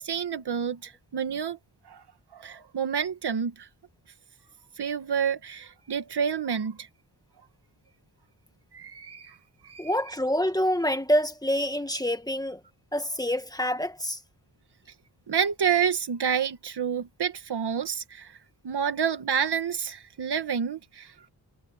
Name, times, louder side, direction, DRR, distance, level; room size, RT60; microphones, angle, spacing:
voice 1, 0.0-1.6 1.9-2.0 2.3-3.7 4.8-6.9 8.7-9.4 9.6-9.9 15.3-18.4 18.6-21.3, right 7 dB, 70° right, 1.7 m, -29 dB
voice 2, 9.8-12.6 12.9-14.2, equal, 10° left, 1.9 m, -26 dB
wide cardioid pair, 110°, 41 cm